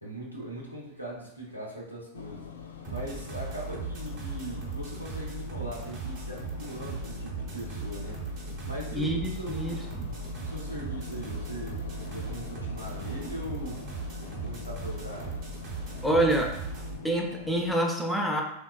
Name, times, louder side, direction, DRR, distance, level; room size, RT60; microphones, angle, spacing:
voice 1, 0.0-2.5 2.9-8.2 8.6-9.8 10.4-11.8 12.1-13.8 14.4-15.4, right 1 dB, 90° right, -3 dB, 0.7 m, -40 dB
sound 1, 2.1-17.8, left 7 dB, 65° left, 0.3 m, -44 dB
sound 2, 2.8-17.0, right 4 dB, 45° right, 0.8 m, -38 dB
voice 2, 8.9-10.1 16.0-16.6 17.0-18.4, right 1 dB, ahead, 0 dB, 0.4 m, -27 dB
3.4 x 2.2 x 2.4 m, 0.78 s
figure-of-eight pair, 90°, 0 cm